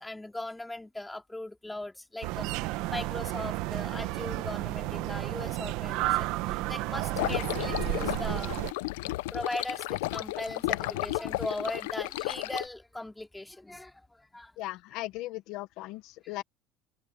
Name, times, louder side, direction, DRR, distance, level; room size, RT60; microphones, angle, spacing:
voice 1, 0.0-2.5 2.9-8.6 9.0-14.5 16.2-16.3, left 2 dB, 5° left, 3.4 m, -39 dB
sound 1, 2.2-8.7, right 18 dB, 65° right, 1.2 m, -32 dB
sound 2, 7.1-12.6, left 19 dB, 90° left, 0.6 m, -33 dB
voice 2, 14.6-16.4, left 17 dB, 65° left, 1.1 m, -38 dB
cardioid pair, 130°, 0 cm